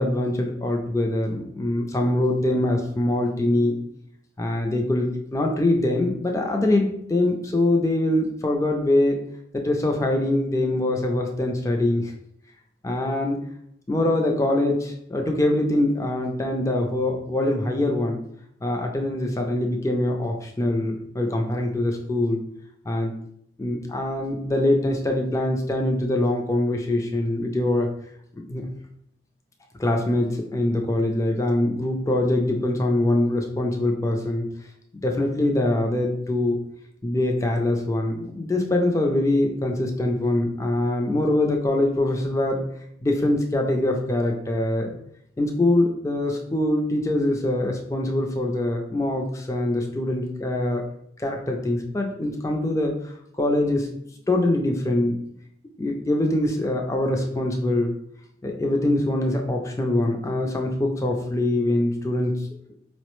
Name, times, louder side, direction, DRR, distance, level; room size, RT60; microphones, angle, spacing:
voice 1, 0.0-3.8 4.4-9.2 9.5-12.1 12.8-13.4 13.9-18.2 18.6-22.4 22.8-23.1 23.6-27.9 28.5-28.7 29.8-34.5 34.9-36.6 37.0-42.6 43.0-45.0 45.4-50.8 51.2-53.9 54.3-55.2 55.8-57.9 58.4-62.4, left 1 dB, 15° left, 2 dB, 0.3 m, -23 dB
4.7 x 2.0 x 3.0 m, 0.71 s
head